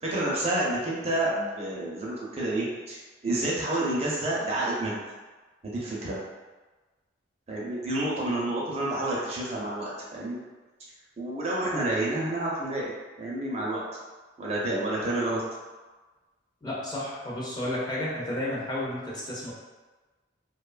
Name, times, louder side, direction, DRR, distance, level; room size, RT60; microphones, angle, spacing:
voice 1, 0.0-5.0 5.6-6.1 7.5-10.4 11.2-12.9 13.2-13.8 14.4-15.4, right 1 dB, 30° right, -5 dB, 0.5 m, -29 dB
voice 2, 16.6-19.5, left 1 dB, 20° left, -7 dB, 0.5 m, -32 dB
2.7 x 2.2 x 2.4 m, 1.3 s
head